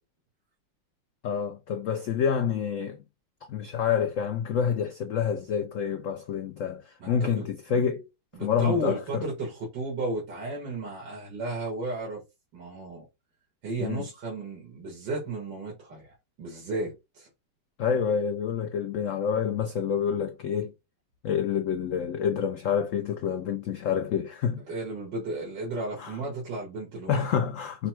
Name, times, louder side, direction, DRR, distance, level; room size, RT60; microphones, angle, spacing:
voice 1, 1.2-3.0 3.5-8.0 8.4-9.2 13.8-14.0 17.8-20.7 21.2-24.6 26.0-26.2 27.1-27.9, left 7 dB, 85° left, 0.7 m, -28 dB
voice 2, 7.0-7.8 8.3-12.2 12.5-13.1 13.6-17.3 24.7-27.3, right 2 dB, 75° right, 2.3 m, -34 dB
5.3 x 2.2 x 4.4 m
omnidirectional pair, 2.0 m